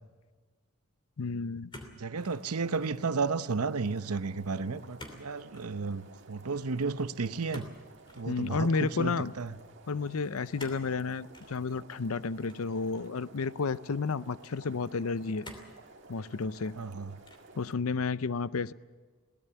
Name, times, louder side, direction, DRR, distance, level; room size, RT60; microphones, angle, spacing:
voice 1, 1.2-1.7 8.3-9.3 9.9-15.4 16.1-16.7 17.6-18.7, left 4 dB, 75° left, 17 dB, 0.6 m, -31 dB
sound 1, 1.7-2.5 2.8-3.2 5.0-5.2 5.5-5.7 7.5-8.3 10.6-10.9 11.3-11.5 12.5-13.2 13.9-14.0 15.4-15.8 16.4-16.9 17.2-17.6, left 1 dB, 20° left, 2.9 m, -48 dB
voice 2, 1.9-7.7 8.1-9.6 16.8-17.2, right 4 dB, 85° right, 13 dB, 0.8 m, -33 dB
sound 2, 2.2-17.7, right 3 dB, 50° right, 1.9 m, -54 dB
22.5 x 18.0 x 7.0 m, 1.4 s
head